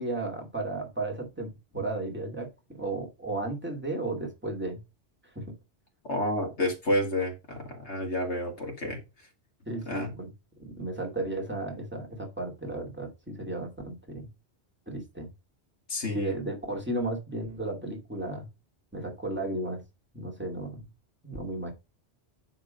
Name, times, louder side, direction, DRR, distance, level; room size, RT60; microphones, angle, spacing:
voice 1, 0.0-4.8 5.3-5.4 9.7-10.3 10.6-14.3 14.9-15.3 16.1-18.5 18.9-19.8 20.1-20.8 21.2-21.7, right 2 dB, 10° right, 2.6 m, -34 dB
voice 2, 6.0-9.0 9.9-10.1 15.9-16.3, left 1 dB, 80° left, 2.5 m, -30 dB
10.0 x 3.7 x 5.2 m
omnidirectional pair, 1.1 m